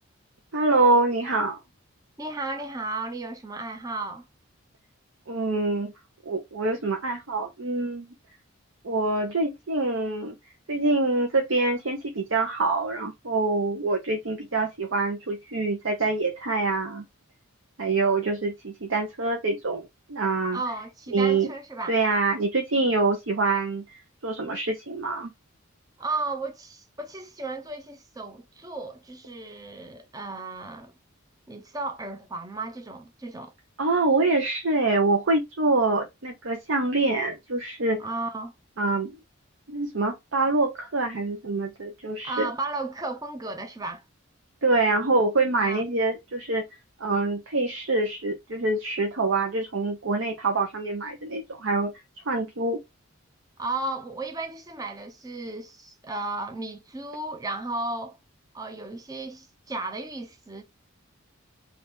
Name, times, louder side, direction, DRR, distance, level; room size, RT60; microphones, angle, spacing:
voice 1, 0.5-1.6 5.3-5.9 6.3-8.1 8.8-10.3 10.7-17.0 17.8-20.6 21.1-21.5 21.9-23.8 24.2-25.3 33.8-38.0 38.8-39.1 39.7-42.5 44.6-46.6 47.0-51.9 52.3-52.8, right 3 dB, 65° right, 0.7 m, -25 dB
voice 2, 2.2-4.2 20.5-21.9 26.0-30.9 31.5-33.5 38.0-38.5 42.2-44.0 45.6-45.8 53.6-58.2 58.5-60.6, right 2 dB, 15° right, 0.5 m, -34 dB
2.9 x 2.5 x 3.4 m
head